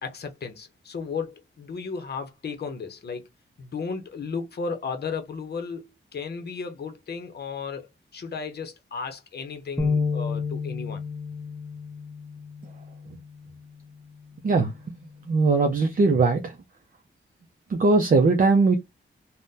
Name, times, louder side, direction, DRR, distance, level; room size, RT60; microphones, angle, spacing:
voice 1, 0.0-3.3 3.6-5.8 6.1-7.9 8.1-11.0, left 5 dB, 55° left, 0.7 m, -34 dB
sound 1, 9.8-16.0, left 4 dB, 5° left, 0.7 m, -32 dB
voice 2, 15.3-16.5 17.7-18.8, right 3 dB, 45° right, 0.5 m, -20 dB
3.6 x 2.1 x 2.6 m
wide cardioid pair, 145°, 20 cm